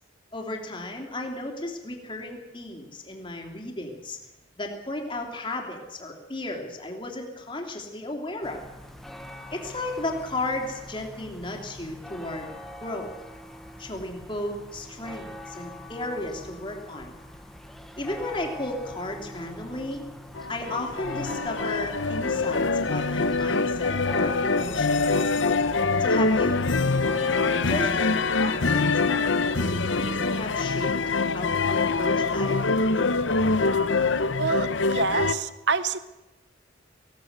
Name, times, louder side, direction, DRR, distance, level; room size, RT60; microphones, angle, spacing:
voice 1, 0.3-4.2 4.6-8.6 9.5-12.5 12.8-13.1 13.8-17.2 18.0-20.0 20.5-25.3 26.0-26.7 27.4-30.9 31.3-32.6, left 2 dB, 25° left, 2 dB, 3.1 m, -34 dB
sound 1, 8.4-27.8, left 1 dB, ahead, 1.3 m, -43 dB
sound 2, 20.4-35.3, left 3 dB, 75° left, 1.0 m, -24 dB
voice 2, 34.4-36.0, right 5 dB, 65° right, 14 dB, 0.9 m, -27 dB
18.5 x 17.0 x 8.2 m, 1.0 s
head